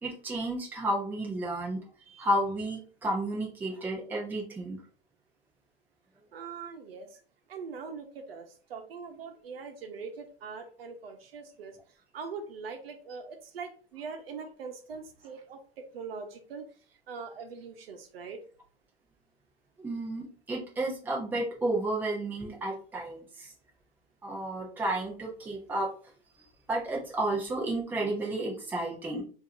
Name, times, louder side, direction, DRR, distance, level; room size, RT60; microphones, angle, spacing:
voice 1, 0.0-1.8 2.2-4.8 19.8-23.5 24.2-25.9 26.7-29.2, right 1 dB, 5° right, -3 dB, 0.8 m, -32 dB
voice 2, 6.3-7.2 7.5-11.8 12.1-16.7 17.1-18.4, right 5 dB, 70° right, 5 dB, 1.0 m, -42 dB
4.6 x 2.8 x 2.6 m, 0.41 s
hypercardioid pair, 150°, 31 cm